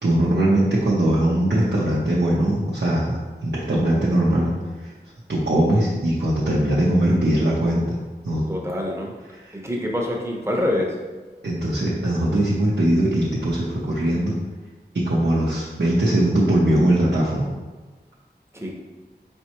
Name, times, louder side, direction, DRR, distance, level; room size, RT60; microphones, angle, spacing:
voice 1, 0.0-4.5 4.8-4.9 5.3-8.0 8.2-8.5 9.3-9.5 11.4-14.4 14.9-17.5, right 1 dB, 75° right, -7 dB, 0.8 m, -20 dB
voice 2, 8.5-9.1 9.5-10.9 18.5-18.7, left 1 dB, 15° right, -1 dB, 0.8 m, -25 dB
4.4 x 3.5 x 2.9 m, 1.3 s
wide cardioid pair, 50°, 18 cm